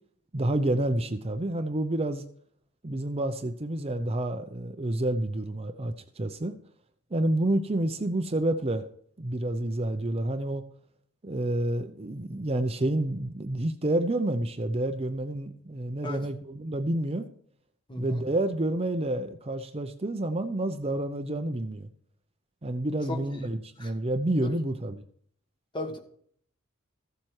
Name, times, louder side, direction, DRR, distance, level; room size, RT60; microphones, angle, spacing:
voice 1, 0.3-2.2 2.8-6.5 7.1-8.9 9.2-10.6 11.2-17.3 18.0-21.9 22.6-25.0, right 1 dB, 25° right, 7 dB, 0.7 m, -29 dB
voice 2, 17.9-18.2 23.1-23.2 23.8-23.9 24.4-24.5 25.7-26.0, left 2 dB, 20° left, 5 dB, 1.5 m, -35 dB
15.0 x 7.5 x 4.7 m, 0.62 s
head